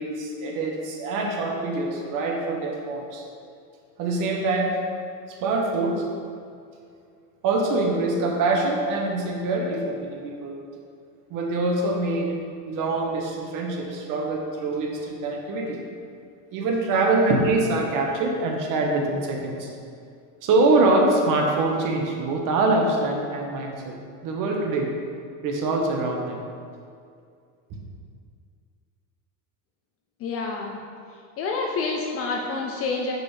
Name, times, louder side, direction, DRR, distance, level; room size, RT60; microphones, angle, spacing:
voice 1, 0.0-3.2 4.0-4.7 5.3-6.0 7.4-10.6 11.3-12.3 12.7-15.8 16.5-19.7 20.4-23.9 24.2-24.9 25.4-26.4, right 2 dB, 45° right, 1 dB, 1.0 m, -24 dB
voice 2, 30.2-30.8 31.4-33.1, left 4 dB, 35° left, 1 dB, 0.4 m, -28 dB
6.1 x 5.2 x 3.2 m, 2.3 s
supercardioid pair, 135°, 46 cm